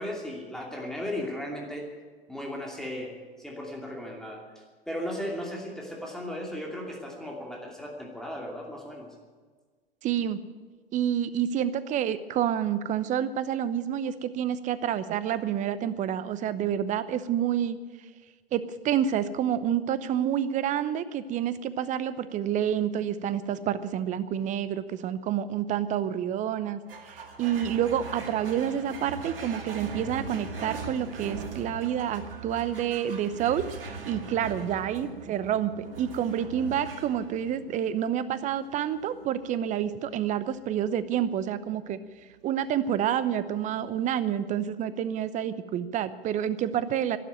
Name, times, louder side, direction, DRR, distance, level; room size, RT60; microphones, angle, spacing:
voice 1, 0.0-1.9 2.3-9.1, left 1 dB, ahead, -1 dB, 2.7 m, -36 dB
voice 2, 10.0-10.4 10.9-17.8 18.5-26.8 27.1-33.6 34.1-42.0 42.4-47.2, right 9 dB, 25° right, 14 dB, 0.8 m, -28 dB
sound 1, 26.9-43.6, right 4 dB, 70° right, 2.3 m, -42 dB
12.0 x 12.0 x 9.1 m, 1.4 s
figure-of-eight pair, 100°, 29 cm